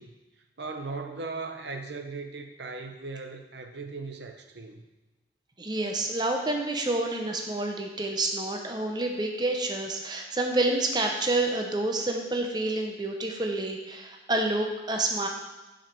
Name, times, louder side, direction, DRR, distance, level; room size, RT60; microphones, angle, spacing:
voice 1, 0.0-4.9, right 3 dB, 70° right, 5 dB, 0.8 m, -38 dB
voice 2, 5.6-15.3, right 2 dB, 25° right, 3 dB, 0.7 m, -28 dB
7.2 x 5.1 x 6.0 m, 1.1 s
head